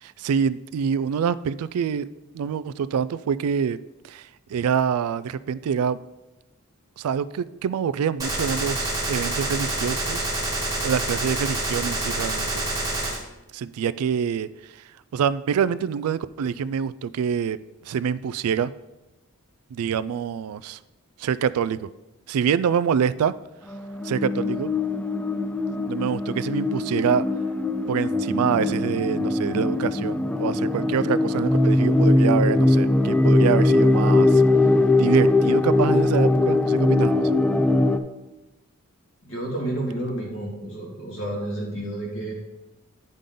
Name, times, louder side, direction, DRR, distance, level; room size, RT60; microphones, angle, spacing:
voice 1, 0.0-2.1 2.3-3.8 4.0-6.0 7.0-10.3 10.8-12.5 13.5-14.8 15.1-17.6 17.9-18.7 19.7-20.8 21.2-21.9 22.3-23.3 24.0-24.7 25.9-27.3 27.9-34.4 34.9-37.3, right 7 dB, 85° right, 16 dB, 0.3 m, -26 dB
Gunshot gunfire, 8.2-13.2, right 2 dB, 15° right, 1.3 m, -27 dB
sound 1, 23.7-38.0, left 2 dB, 5° left, 0.3 m, -21 dB
voice 2, 39.2-42.3, right 1 dB, 60° left, -2 dB, 2.2 m, -30 dB
10.0 x 5.3 x 3.8 m, 1.0 s
head